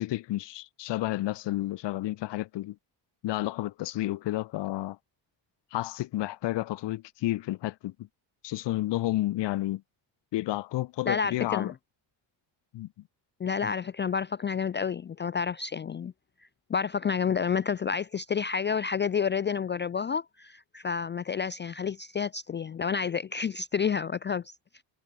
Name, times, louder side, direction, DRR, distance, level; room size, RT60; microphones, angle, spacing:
voice 1, 0.0-2.8 3.2-5.0 5.7-7.9 8.4-9.8 10.3-11.7 12.7-12.9, left 16 dB, 65° left, 0.9 m, -31 dB
voice 2, 11.1-11.7 13.4-16.1 16.7-24.5, left 6 dB, 25° left, 0.4 m, -29 dB
cardioid pair, 160°, 46 cm